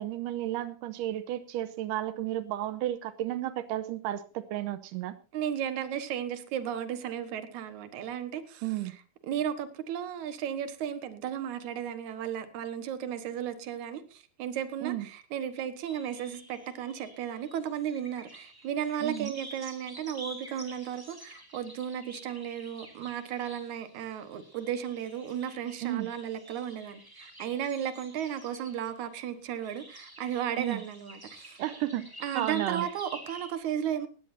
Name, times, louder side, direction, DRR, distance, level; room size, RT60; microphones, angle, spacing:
voice 1, 0.0-5.2 8.6-8.9 14.8-15.1 19.0-19.3 25.8-26.1 30.6-30.8 31.6-32.9, right 13 dB, 90° right, 2.4 m, -33 dB
voice 2, 5.3-8.6 9.3-31.6 32.2-34.1, right 9 dB, 70° right, 2.7 m, -34 dB
sound 1, 15.9-29.1 29.6-33.5, right 1 dB, 5° right, 2.8 m, -49 dB
20.0 x 16.0 x 2.7 m
omnidirectional pair, 3.7 m